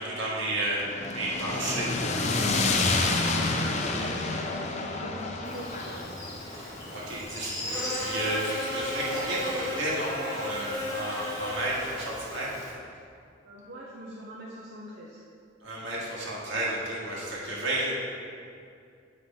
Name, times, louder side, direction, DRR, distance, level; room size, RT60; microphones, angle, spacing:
voice 1, 0.0-1.9 6.9-12.5 15.6-17.9, right 1 dB, 80° right, -6 dB, 1.8 m, -32 dB
sound 1, 0.8-9.0, left 3 dB, 35° left, 0.5 m, -29 dB
voice 2, 3.0-6.2 13.4-15.2, equal, 60° right, -5 dB, 0.7 m, -42 dB
Buzz, 5.4-12.7, left 1 dB, 20° left, 1.3 m, -35 dB
7.6 x 5.7 x 3.6 m, 2.4 s
head